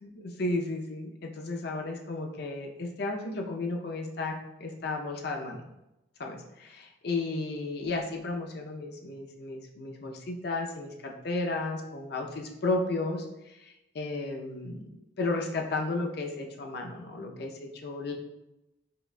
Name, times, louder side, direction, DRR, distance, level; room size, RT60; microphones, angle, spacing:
voice 1, 0.0-4.3 4.6-5.6 6.2-14.9 15.2-18.1, left 2 dB, 55° left, 2 dB, 0.5 m, -33 dB
4.7 x 2.2 x 2.4 m, 0.93 s
head